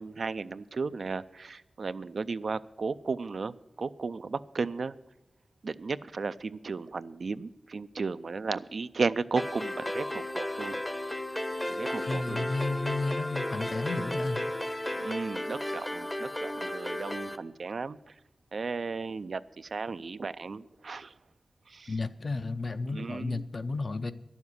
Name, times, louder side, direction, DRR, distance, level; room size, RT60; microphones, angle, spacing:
voice 1, 0.0-5.0 5.6-11.1 11.6-12.5 15.0-18.1 18.5-21.1 21.7-21.9 22.9-23.4, right 4 dB, 70° right, 14 dB, 0.4 m, -35 dB
sound 1, 9.4-17.4, left 1 dB, 15° left, 0.7 m, -34 dB
voice 2, 12.1-14.5 21.9-24.1, left 3 dB, 55° left, 11 dB, 0.6 m, -32 dB
11.0 x 7.2 x 9.5 m, 0.92 s
wide cardioid pair, 95°, 0 cm